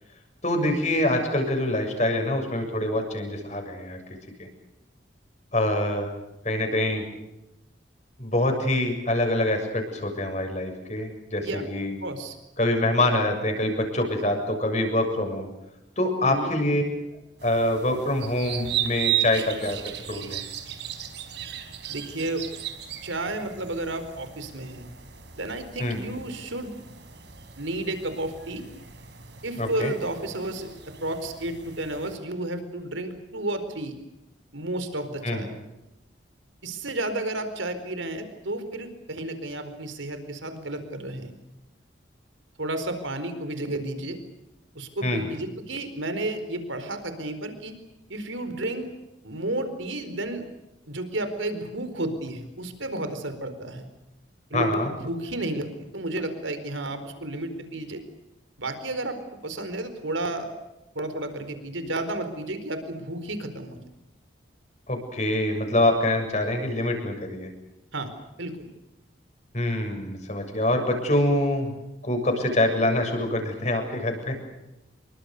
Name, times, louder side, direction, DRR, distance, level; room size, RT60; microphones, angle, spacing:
voice 1, 0.4-4.0 4.4-4.5 5.5-6.1 6.4-7.0 8.2-12.0 12.6-15.5 16.0-16.8 17.4-19.8 20.1-20.4 25.8-26.0 29.6-29.9 35.2-35.5 45.0-45.2 54.5-54.9 64.9-67.5 69.5-71.8 72.0-74.4, left 1 dB, 35° left, 4 dB, 7.1 m, -25 dB
voice 2, 12.0-12.4 16.2-16.5 21.9-22.4 23.0-24.9 25.4-26.7 27.6-28.6 29.4-34.0 34.5-35.5 36.6-41.3 42.6-44.2 44.7-47.7 48.1-48.9 49.2-50.4 50.9-53.9 54.5-55.7 55.9-58.0 58.6-59.2 59.4-60.5 60.9-63.8 67.9-68.1 68.4-68.7, right 2 dB, 90° right, 9 dB, 4.5 m, -32 dB
sound 1, 17.4-32.2, right 11 dB, 65° right, 4.3 m, -36 dB
28.0 x 24.0 x 6.7 m, 0.94 s
head